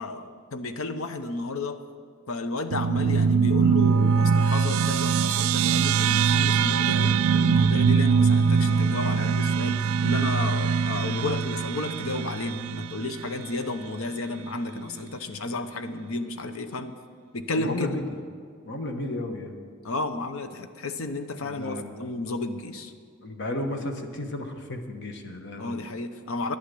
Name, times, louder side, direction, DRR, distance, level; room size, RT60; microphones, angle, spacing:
voice 1, 0.0-1.8 2.3-17.0 17.3-18.0 19.8-22.9 25.6-26.6, left 2 dB, 75° left, 9 dB, 0.8 m, -32 dB
sound 1, 2.7-13.5, right 6 dB, 85° right, 0.4 m, -22 dB
voice 2, 17.6-18.0 18.6-19.5 21.4-22.0 23.2-25.7, left 1 dB, 55° left, 5 dB, 1.2 m, -33 dB
11.5 x 10.5 x 6.8 m, 2.1 s
head